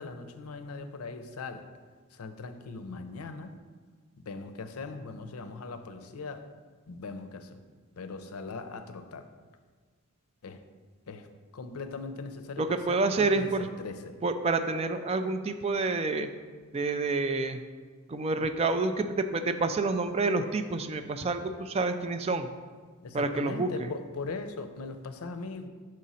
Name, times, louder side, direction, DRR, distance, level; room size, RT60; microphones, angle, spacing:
voice 1, 0.0-1.6 2.1-3.5 4.3-6.4 6.9-7.6 8.0-9.2 10.4-10.6 11.1-11.3 11.5-14.2 23.0-25.7, left 3 dB, 85° left, 9 dB, 0.5 m, -40 dB
voice 2, 12.6-13.7 14.2-16.3 16.7-17.6 18.1-22.5 23.1-23.9, right 3 dB, 30° right, 9 dB, 0.3 m, -28 dB
6.5 x 5.0 x 4.1 m, 1.5 s
head